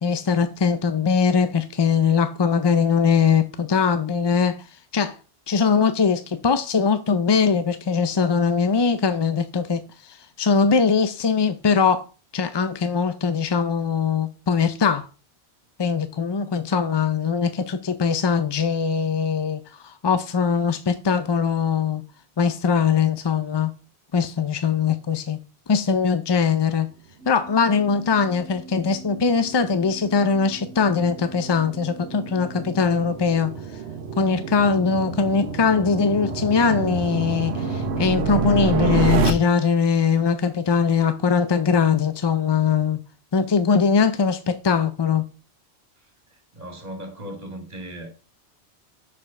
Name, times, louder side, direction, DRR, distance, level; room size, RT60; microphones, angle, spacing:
voice 1, 0.0-5.2 5.5-12.1 12.3-15.1 15.8-22.0 22.4-23.7 24.1-25.4 25.7-26.9 27.3-33.5 34.2-43.0 43.3-45.2, left 5 dB, 40° left, 0.4 m, -21 dB
sound 1, 27.2-32.8, right 3 dB, ahead, 2.8 m, -43 dB
sound 2, 28.2-39.3, right 5 dB, 80° right, 1.2 m, -28 dB
voice 2, 46.5-48.1, right 1 dB, 40° right, 2.4 m, -36 dB
6.5 x 5.0 x 5.7 m
omnidirectional pair, 1.1 m